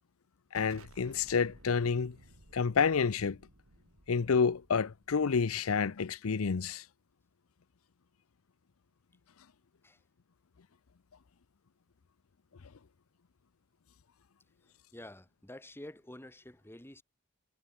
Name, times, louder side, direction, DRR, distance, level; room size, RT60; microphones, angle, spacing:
voice 1, 0.5-2.2 2.5-3.4 4.1-6.8, left 5 dB, 85° left, 0.6 m, -29 dB
Explosion, 0.5-6.0, right 1 dB, 85° right, 4.3 m, -58 dB
voice 2, 14.9-17.0, left 1 dB, 10° left, 1.8 m, -49 dB
head